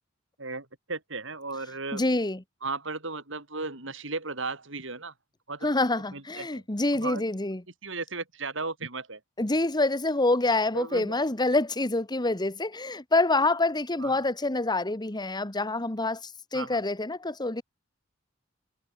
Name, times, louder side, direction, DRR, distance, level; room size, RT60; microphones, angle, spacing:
voice 1, 0.4-2.0 2.6-5.1 5.5-5.7 6.1-6.6 6.9-7.2 7.8-9.2 10.7-11.1 14.0-14.2 16.5-16.8, right 3 dB, 70° right, 5.7 m, -35 dB
voice 2, 1.9-2.4 5.6-7.6 9.4-17.6, left 2 dB, 20° left, 1.5 m, -26 dB
head